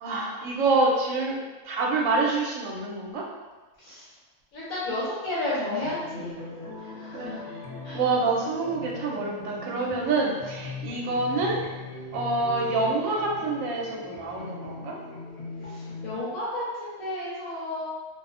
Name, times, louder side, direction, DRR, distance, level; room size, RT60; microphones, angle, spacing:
voice 1, 0.0-1.4 1.6-3.2 7.1-7.3 7.9-11.6 12.1-14.9, right 3 dB, 75° right, -2 dB, 0.9 m, -26 dB
voice 2, 4.5-6.4 7.0-7.4 7.8-8.0 15.6-17.9, left 1 dB, 75° left, -9 dB, 1.1 m, -32 dB
sound 1, 5.8-16.2, left 3 dB, 50° left, 0.5 m, -39 dB
2.5 x 2.0 x 2.4 m, 1.3 s
omnidirectional pair, 1.4 m